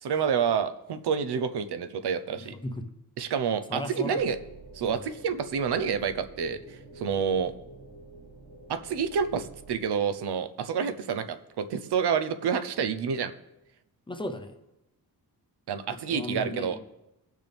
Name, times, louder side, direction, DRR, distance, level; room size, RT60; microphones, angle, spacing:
voice 1, 0.0-2.5 3.2-4.4 4.7-7.5 8.7-13.3 15.7-16.8, right 7 dB, 80° right, 10 dB, 0.8 m, -28 dB
voice 2, 2.4-2.9 3.7-4.2 4.8-5.0 14.1-14.6 16.1-16.8, left 1 dB, 15° left, 5 dB, 0.7 m, -35 dB
sound 1, 4.2-9.8, right 2 dB, 45° right, 3.3 m, -49 dB
18.5 x 6.4 x 3.5 m, 0.89 s
wide cardioid pair, 175°, 39 cm